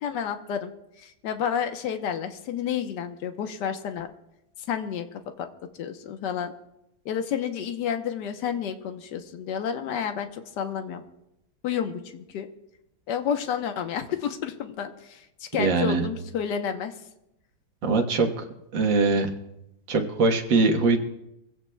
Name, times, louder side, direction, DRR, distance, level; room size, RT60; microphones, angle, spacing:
voice 1, 0.0-0.7 1.0-4.1 4.7-5.5 5.8-6.5 7.0-11.0 11.6-12.5 13.1-16.9, left 8 dB, 70° left, 7 dB, 1.5 m, -30 dB
voice 2, 15.6-16.0 17.8-18.5 18.7-19.3 19.9-21.0, right 3 dB, 75° right, 3 dB, 2.0 m, -22 dB
23.5 x 16.0 x 2.3 m, 0.85 s
omnidirectional pair, 2.0 m